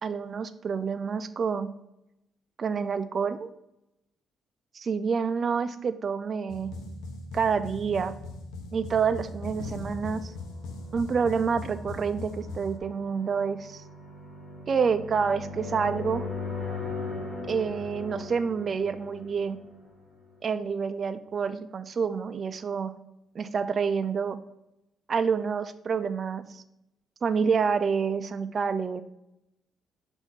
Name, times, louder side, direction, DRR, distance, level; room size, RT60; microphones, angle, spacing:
voice 1, 0.0-1.7 2.6-3.5 4.7-6.7 7.3-8.1 8.7-10.3 10.9-13.8 14.7-16.3 17.5-19.6 20.4-22.9 23.3-24.4 25.1-26.6 27.2-29.0, right 6 dB, 45° right, 11 dB, 0.5 m, -28 dB
sound 1, 6.5-12.8, left 2 dB, 90° left, 0.8 m, -39 dB
sound 2, 9.7-20.4, left 3 dB, 35° left, 2.4 m, -39 dB
7.3 x 2.7 x 5.6 m, 0.86 s
cardioid pair, 90°, 0 cm